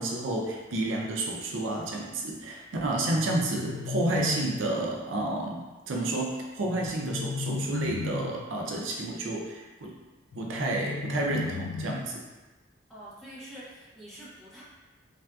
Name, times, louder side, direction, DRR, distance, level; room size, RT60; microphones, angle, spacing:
voice 1, 0.0-9.9 10.3-12.2, right 2 dB, 80° right, -2 dB, 0.5 m, -30 dB
sound 1, 2.9-4.9 6.6-8.5 10.3-12.3, left 4 dB, 75° left, 0.3 m, -35 dB
voice 2, 12.9-14.6, right 1 dB, ahead, -10 dB, 0.7 m, -46 dB
3.3 x 2.5 x 2.3 m, 1.2 s
head